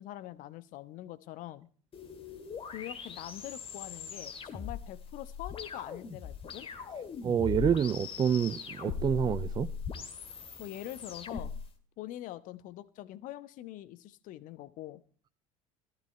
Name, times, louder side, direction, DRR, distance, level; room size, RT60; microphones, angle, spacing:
voice 1, 0.0-1.7 2.7-6.7 10.6-11.5 12.0-15.0, left 14 dB, 50° left, 12 dB, 1.0 m, -44 dB
sound 1, 1.9-11.7, left 6 dB, 30° left, 2.0 m, -40 dB
voice 2, 7.2-9.7, right 8 dB, 25° right, 14 dB, 0.5 m, -28 dB
15.0 x 12.5 x 4.5 m, 0.43 s
figure-of-eight pair, 65°, 18 cm